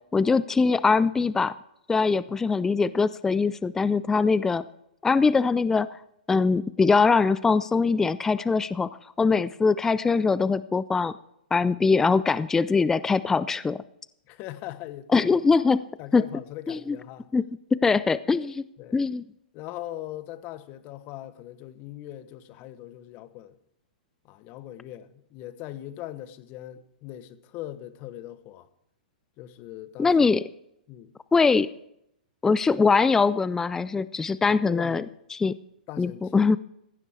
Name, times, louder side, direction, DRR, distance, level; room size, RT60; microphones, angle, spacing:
voice 1, 0.1-1.6 1.9-4.6 5.0-5.9 6.3-8.9 9.2-11.1 11.5-13.8 15.1-15.8 16.1-16.2 16.7-17.0 17.3-17.4 17.7-18.6 18.9-19.2 30.0-30.4 31.3-31.7 32.4-35.0 35.3-35.5 36.0-36.6, left 4 dB, 10° left, 0.4 m, -22 dB
voice 2, 14.3-15.6 16.0-17.3 18.8-19.0 19.5-23.6 24.2-28.7 29.4-30.2 30.9-31.1 34.5-35.2 35.9-36.5, left 13 dB, 35° left, 1.1 m, -40 dB
15.5 x 11.0 x 4.7 m
hypercardioid pair, 130°, 5 cm